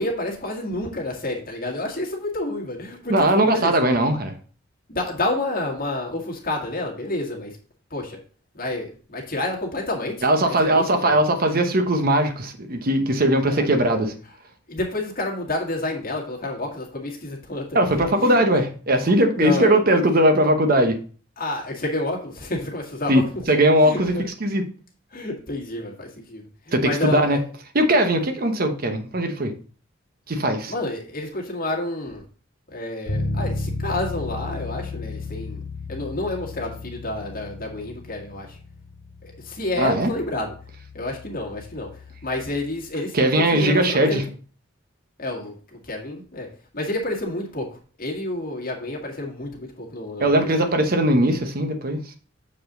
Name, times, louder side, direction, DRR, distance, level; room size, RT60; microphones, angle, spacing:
voice 1, 0.0-3.7 4.9-7.6 7.9-8.2 8.5-10.2 10.4-11.1 13.5-13.7 14.7-17.9 18.2-18.6 19.2-19.7 21.4-23.2 23.8-24.2 25.1-27.4 30.7-32.2 32.7-35.6 35.9-38.6 39.2-40.5 40.9-41.9 42.2-44.2 45.2-46.5 46.7-47.7 48.0-50.5, left 2 dB, 45° left, 1.9 m, -29 dB
voice 2, 3.1-4.3 10.2-14.1 17.7-21.0 23.1-24.6 26.7-27.4 27.7-29.5 30.3-30.7 39.8-40.1 43.1-44.3 50.2-52.0, right 1 dB, 50° right, 0.9 m, -19 dB
Bass guitar, 33.1-42.8, left 3 dB, 85° left, 1.5 m, -34 dB
7.2 x 4.8 x 3.8 m
head